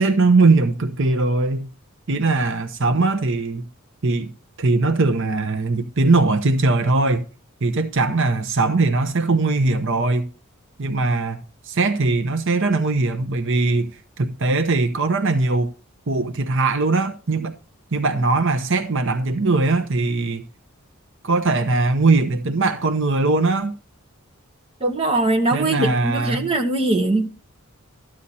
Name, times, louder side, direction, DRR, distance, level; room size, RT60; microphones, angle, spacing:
voice 1, 0.0-1.7 2.1-3.6 4.0-4.3 4.6-7.3 7.6-10.3 10.8-11.4 11.6-15.7 16.1-17.5 17.9-20.4 21.2-23.7 25.5-26.5, right 3 dB, 60° right, 0.9 m, -20 dB
voice 2, 24.8-27.3, right 2 dB, 25° right, 1.8 m, -21 dB
13.5 x 9.9 x 4.2 m
head